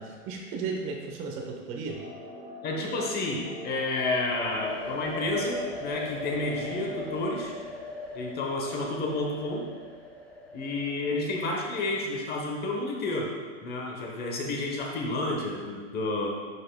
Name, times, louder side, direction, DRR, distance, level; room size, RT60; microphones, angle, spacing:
voice 1, 0.0-2.0, right 4 dB, 35° right, 1 dB, 0.9 m, -35 dB
sound 1, 1.9-7.4, left 1 dB, 75° right, 1.4 m, -43 dB
voice 2, 2.6-7.6 8.1-9.6 10.5-13.3 13.6-16.3, left 2 dB, 25° left, 0 dB, 1.0 m, -30 dB
sound 2, 4.3-12.0, left 1 dB, 5° left, 0.5 m, -40 dB
10.5 x 5.5 x 2.2 m, 1.6 s
hypercardioid pair, 135°, 39 cm